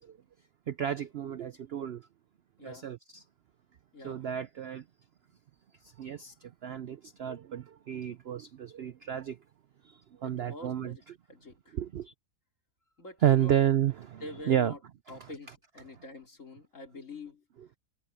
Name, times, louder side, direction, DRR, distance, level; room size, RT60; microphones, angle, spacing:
voice 1, 0.7-2.1 2.6-3.2 4.0-4.8 6.0-9.4 9.8-10.9 11.7-12.1 13.2-14.7, right 10 dB, 90° right, 0.5 m, -31 dB
voice 2, 2.6-2.9 3.9-4.3 10.2-11.0 11.3-11.8 13.0-13.6 14.2-14.8 15.1-17.4, left 2 dB, 50° left, 3.9 m, -46 dB
omnidirectional pair, 1.8 m